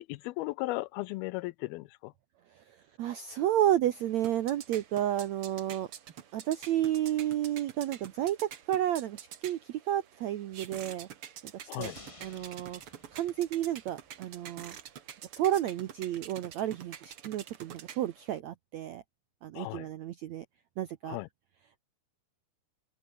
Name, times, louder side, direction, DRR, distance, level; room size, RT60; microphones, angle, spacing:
voice 1, 0.0-2.1 11.7-12.0 19.6-19.9 21.0-21.3, left 20 dB, 85° left, 2.5 m, -36 dB
voice 2, 3.0-5.9 6.3-11.1 11.4-11.5 11.8-11.9 12.2-12.8 13.1-14.8 15.4-19.0 19.4-20.4 20.8-21.2, right 12 dB, 75° right, 1.6 m, -31 dB
sound 1, 3.9-18.4, right 9 dB, 50° right, 1.8 m, -48 dB
sound 2, 11.8-14.2 14.5-14.6, left 2 dB, 30° left, 0.6 m, -53 dB
open air
omnidirectional pair, 4.4 m